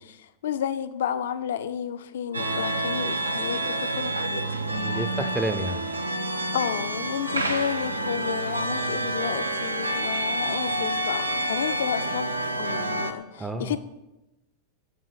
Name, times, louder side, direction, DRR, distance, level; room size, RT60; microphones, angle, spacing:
voice 1, 0.4-3.6 4.0-4.4 6.5-12.3 12.6-13.2 13.6-13.8, left 9 dB, 60° left, 12 dB, 0.4 m, -31 dB
sound 1, 2.3-13.1, right 1 dB, 80° right, 0.5 m, -28 dB
voice 2, 4.7-5.9 13.4-13.8, right 1 dB, 5° right, 6 dB, 0.4 m, -30 dB
9.4 x 3.7 x 4.3 m, 0.98 s
figure-of-eight pair, 90°, 0 cm